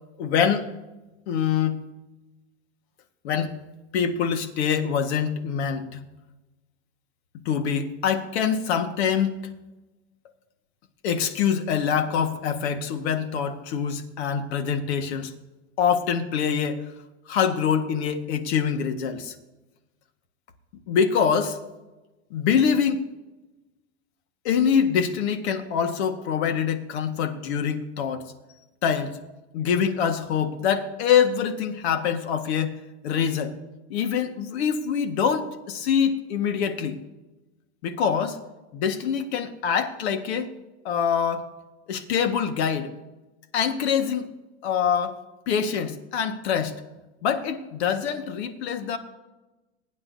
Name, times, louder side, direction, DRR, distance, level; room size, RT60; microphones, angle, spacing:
voice 1, 0.2-0.7 1.3-1.8 3.2-3.5 3.9-6.0 7.5-9.4 11.0-15.3 15.8-16.8 17.3-19.3 20.9-21.6 22.3-23.1 24.5-28.3 28.8-29.2 29.5-32.8 33.0-33.6 33.9-37.0 37.8-38.4 38.7-40.5 40.9-41.5 41.9-42.9 43.5-44.3 44.6-45.2 45.5-46.8 47.2-49.0, left 7 dB, 65° left, 7 dB, 1.7 m, -24 dB
22.5 x 10.0 x 2.8 m, 1.1 s
supercardioid pair, 155°, 35 cm